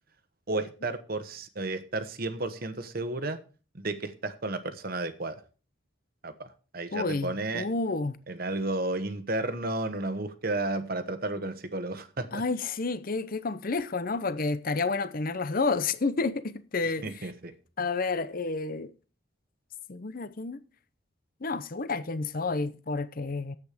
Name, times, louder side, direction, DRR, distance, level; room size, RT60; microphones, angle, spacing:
voice 1, 0.5-3.4 3.7-5.4 6.2-7.7 8.3-12.4 17.0-17.5, right 2 dB, 45° right, 1.1 m, -32 dB
voice 2, 6.9-8.2 12.3-17.3 17.8-18.9 19.9-20.6 21.4-23.6, left 3 dB, 45° left, 0.7 m, -30 dB
9.8 x 8.3 x 5.0 m
head